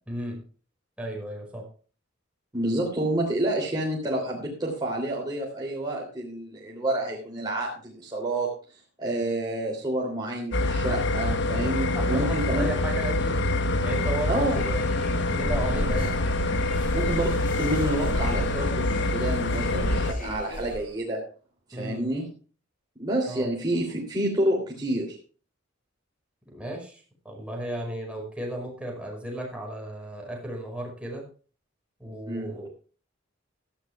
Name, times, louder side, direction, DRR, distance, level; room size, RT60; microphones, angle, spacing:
voice 1, 0.1-0.4 1.0-1.6 11.9-13.4 13.8-14.9 15.3-16.3 21.7-22.1 23.3-23.5 26.5-31.2 32.0-32.7, right 1 dB, 5° right, 0 dB, 5.5 m, -35 dB
voice 2, 2.5-8.5 9.0-12.7 14.3-14.6 16.9-21.2 21.7-22.3 23.0-25.2 32.3-32.4, right 1 dB, 20° right, -3 dB, 3.1 m, -29 dB
sound 1, 10.5-20.1, left 2 dB, 65° left, 1.2 m, -26 dB
sound 2, 13.7-20.9, equal, 45° left, 5.7 m, -34 dB
16.5 x 13.5 x 2.4 m, 0.38 s
head